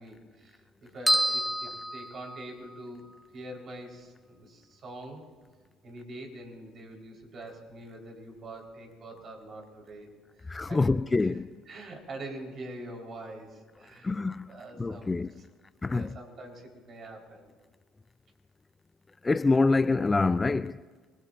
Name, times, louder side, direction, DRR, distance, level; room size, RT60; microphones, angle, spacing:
voice 1, 0.0-3.0 3.3-5.2 5.8-10.1 10.4-11.3 11.7-14.2 14.4-15.1 15.9-17.5, right 1 dB, 50° right, 4.3 m, -44 dB
sound 1, 1.1-2.8, equal, 5° right, 1.6 m, -28 dB
voice 2, 10.5-11.6 14.0-14.5 14.8-15.3 15.8-16.1 19.2-20.8, left 3 dB, 20° left, 0.4 m, -26 dB
26.5 x 21.0 x 2.6 m
hypercardioid pair, 70°, 0 cm